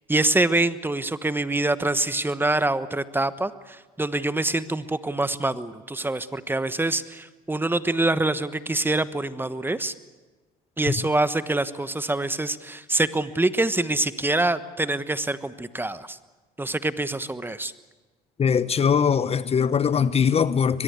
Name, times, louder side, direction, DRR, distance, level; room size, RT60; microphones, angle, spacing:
voice 1, 0.1-9.9 10.8-16.2 16.6-17.7, right 2 dB, 10° right, 1.2 m, -25 dB
voice 2, 18.4-20.8, left 7 dB, 35° left, 0.9 m, -21 dB
22.5 x 22.0 x 8.2 m
supercardioid pair, 75°, 18 cm